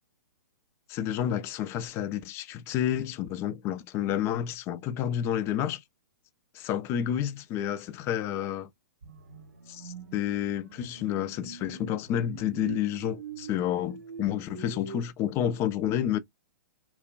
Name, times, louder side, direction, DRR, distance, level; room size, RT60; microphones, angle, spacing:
voice 1, 0.9-5.8 6.5-8.7 9.7-16.2, left 10 dB, 25° left, 0.4 m, -30 dB
sound 1, 9.0-15.0, right 7 dB, 70° right, 0.6 m, -44 dB
3.0 x 2.1 x 2.3 m
figure-of-eight pair, 115°, 10 cm